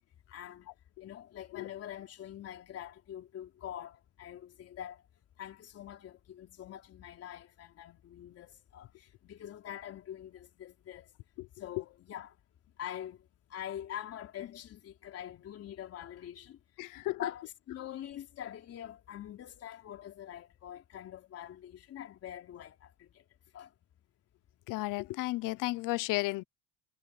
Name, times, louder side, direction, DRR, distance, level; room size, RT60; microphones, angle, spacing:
voice 1, 0.3-0.7 1.0-5.0 5.4-11.1 11.6-12.3 12.8-13.2 13.5-16.6 17.2-23.1 23.5-23.7, left 10 dB, 45° left, 3.8 m, -44 dB
voice 2, 16.8-17.2 24.7-26.4, left 20 dB, 70° left, 0.9 m, -33 dB
cardioid pair, 140°, 33 cm